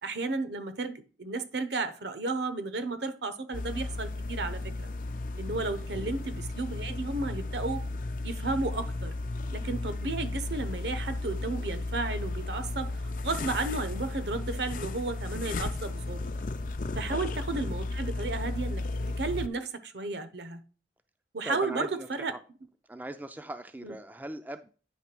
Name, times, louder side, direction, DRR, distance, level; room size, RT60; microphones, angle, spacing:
voice 1, 0.0-4.9 5.4-7.8 8.2-9.1 9.5-16.3 16.9-18.8 19.2-20.6 21.3-22.3 23.8-23.9, right 3 dB, 75° right, 0.9 m, -33 dB
sound 1, 3.5-19.5, left 2 dB, 50° left, 0.5 m, -34 dB
voice 2, 6.0-6.3 17.1-17.2 21.4-22.4 22.9-24.7, right 1 dB, 10° right, 0.4 m, -40 dB
9.3 x 3.2 x 6.0 m
head